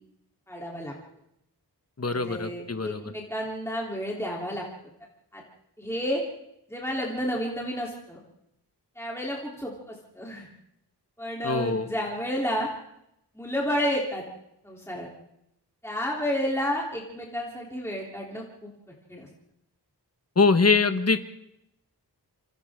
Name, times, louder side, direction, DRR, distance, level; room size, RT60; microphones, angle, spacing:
voice 1, 0.5-0.9 2.1-4.6 5.3-5.4 5.8-6.2 6.7-8.2 9.0-10.5 11.2-12.7 13.4-14.2 14.6-15.1 15.8-18.7 19.1-19.3, equal, 5° left, -3 dB, 3.4 m, -31 dB
voice 2, 2.0-3.1 11.4-11.9 20.3-21.2, left 4 dB, 40° left, 9 dB, 1.3 m, -23 dB
27.5 x 27.0 x 3.7 m, 0.83 s
wide cardioid pair, 75°, 40 cm